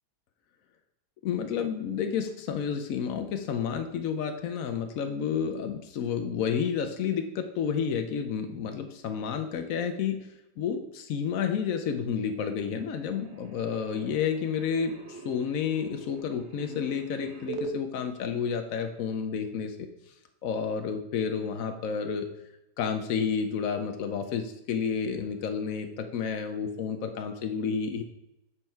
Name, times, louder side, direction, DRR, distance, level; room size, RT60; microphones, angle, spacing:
voice 1, 1.2-10.3 10.6-19.8 20.4-22.3 22.8-28.0, left 7 dB, 90° left, 6 dB, 0.7 m, -30 dB
sound 1, 11.9-12.3 12.6-17.7, right 4 dB, 55° right, 0.7 m, -43 dB
7.9 x 5.6 x 4.4 m, 0.90 s
omnidirectional pair, 2.2 m